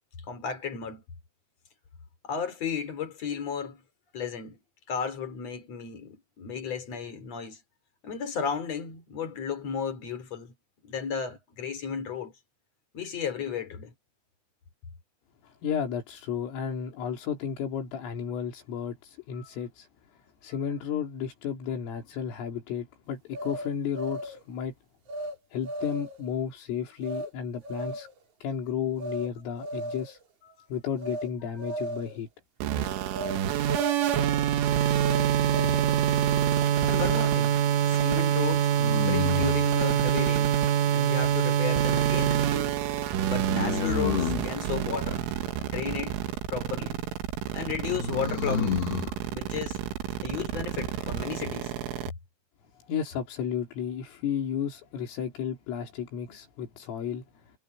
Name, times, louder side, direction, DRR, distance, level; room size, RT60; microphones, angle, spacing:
voice 1, 0.3-1.0 2.2-3.8 4.1-4.6 4.9-7.6 8.0-10.5 10.8-12.3 12.9-13.9 19.4-19.5 20.5-20.6 36.8-37.6 37.8-38.7 39.0-40.6 40.9-42.8 43.3-45.2 45.6-46.2 46.5-47.0 47.5-48.9 49.3-49.8 50.2-51.7, left 7 dB, 35° left, 3.7 m, -34 dB
voice 2, 15.4-19.9 20.4-24.7 25.5-28.1 28.4-30.2 30.7-32.3 52.9-57.5, left 8 dB, 80° left, 6.3 m, -33 dB
sound 1, 23.3-24.4 25.1-25.4 25.6-26.3 27.0-27.3 27.6-28.2 29.0-29.3 29.6-30.2 31.0-31.3 31.6-32.2 33.1-33.4 33.6-34.5 35.0-36.0, right 1 dB, 45° right, 3.4 m, -36 dB
sound 2, 32.6-52.1, right 10 dB, 75° right, 4.2 m, -26 dB
sound 3, 36.0-36.7 38.8-39.7 43.5-44.5 47.9-49.1, left 7 dB, 60° left, 3.7 m, -30 dB
omnidirectional pair, 5.8 m